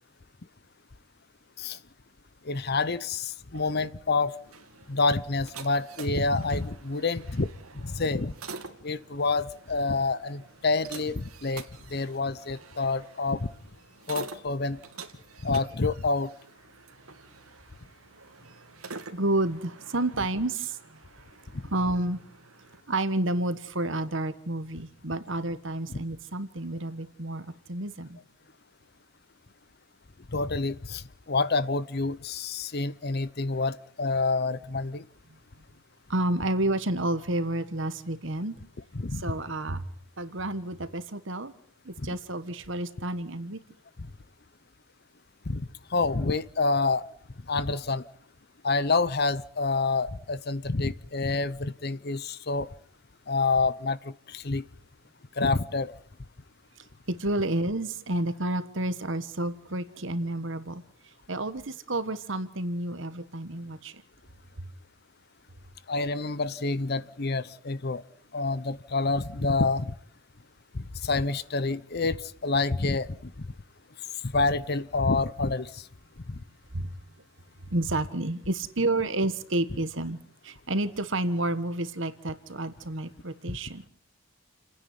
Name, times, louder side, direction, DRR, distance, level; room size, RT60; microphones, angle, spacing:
voice 1, 2.4-4.3 4.9-7.5 7.7-8.3 8.8-11.6 11.9-13.5 14.1-14.8 15.4-16.3 25.9-26.0 30.3-35.0 38.9-39.3 42.0-42.1 45.5-47.1 47.5-48.0 48.6-52.7 53.3-54.6 55.4-55.9 65.9-68.0 68.3-69.9 70.7-73.5 74.2-75.9 76.3-76.4 83.5-83.6, left 3 dB, 50° left, 0.8 m, -28 dB
sound 1, 4.3-22.8, right 5 dB, 85° right, 2.4 m, -47 dB
voice 2, 19.1-20.8 21.7-22.2 22.9-28.2 36.1-38.5 39.1-39.8 40.2-41.5 41.8-43.6 57.1-60.8 61.3-63.9 76.7-76.9 77.7-80.2 80.4-83.8, right 1 dB, 60° right, 1.5 m, -30 dB
30.0 x 10.0 x 9.5 m
head